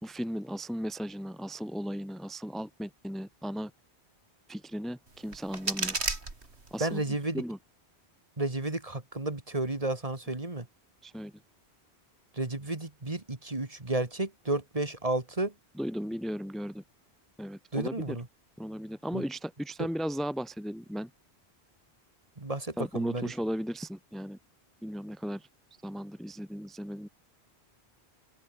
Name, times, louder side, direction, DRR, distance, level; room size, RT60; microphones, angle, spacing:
voice 1, 0.0-3.7 4.5-6.0 6.7-7.6 11.0-11.3 15.7-16.8 17.4-18.2 18.6-21.1 22.8-24.4 24.8-25.5 25.8-27.1, equal, ahead, 1.3 m, -36 dB
sound 1, 5.1-7.1, right 3 dB, 85° right, 3.4 m, -34 dB
voice 2, 6.8-7.4 8.4-10.7 12.3-15.5 17.7-18.3 19.1-19.2 19.8-19.9 22.4-23.3, right 2 dB, 35° right, 2.2 m, -32 dB
omnidirectional pair, 1.1 m